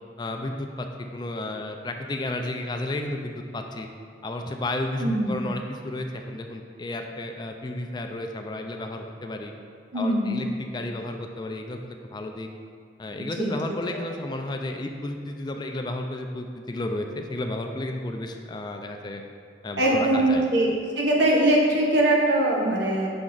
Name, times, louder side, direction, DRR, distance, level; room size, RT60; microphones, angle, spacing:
voice 1, 0.2-3.9 4.2-9.5 9.9-12.5 13.0-19.2 19.6-20.5, left 1 dB, 25° left, 4 dB, 0.3 m, -32 dB
voice 2, 5.0-5.4 9.9-10.5 13.4-13.5 19.8-23.1, right 1 dB, 85° right, -2 dB, 1.1 m, -22 dB
6.0 x 4.3 x 3.9 m, 2.3 s
head